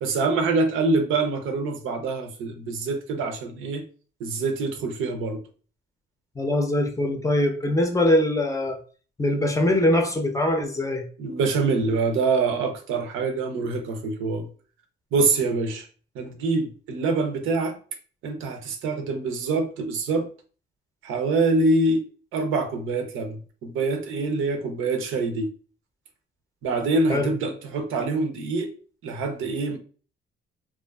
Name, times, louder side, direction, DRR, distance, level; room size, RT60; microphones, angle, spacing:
voice 1, 0.0-3.8 4.2-5.4 11.2-14.5 15.1-15.9 16.1-17.8 18.2-20.3 21.0-22.0 22.3-25.5 26.6-28.7 29.0-29.8, right 3 dB, 85° right, 0.6 m, -25 dB
voice 2, 6.4-8.8 9.2-11.0 27.1-27.3, left 1 dB, 15° left, 0.5 m, -22 dB
2.4 x 2.4 x 2.3 m
cardioid pair, 90°, 20 cm